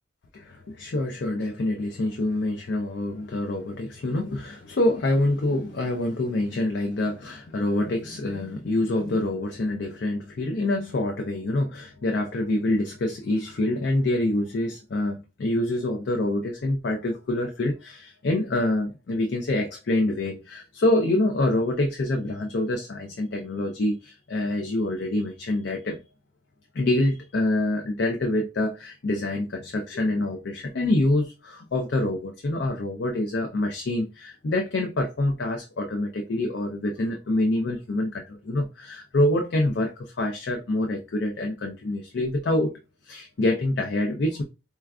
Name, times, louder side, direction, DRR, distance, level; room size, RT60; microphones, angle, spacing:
voice 1, 0.3-26.0 26.7-42.7 43.0-44.4, left 1 dB, 55° left, 0.4 m, -26 dB
4.3 x 2.3 x 2.4 m
head